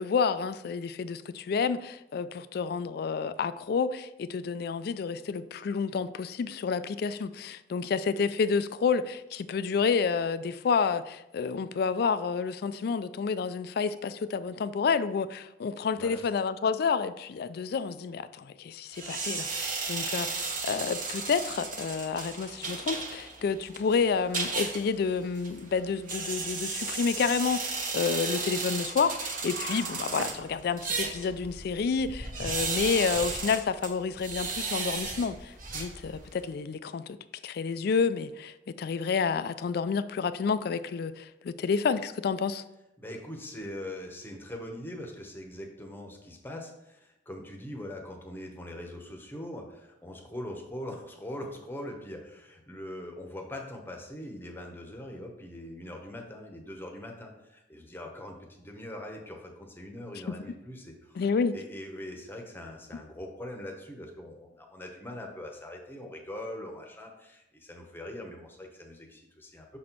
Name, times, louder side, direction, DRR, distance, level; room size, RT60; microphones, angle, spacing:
voice 1, 0.0-37.2 37.4-42.6 60.3-60.4 61.2-61.5, left 5 dB, 55° left, 13 dB, 0.3 m, -29 dB
sound 1, 18.9-36.4, right 4 dB, 45° right, 1.1 m, -35 dB
sound 2, 29.1-31.1, right 4 dB, 75° right, 0.5 m, -42 dB
voice 2, 43.0-61.3 61.5-69.8, left 1 dB, 10° left, 2 dB, 0.9 m, -42 dB
6.3 x 4.2 x 4.4 m, 0.90 s
head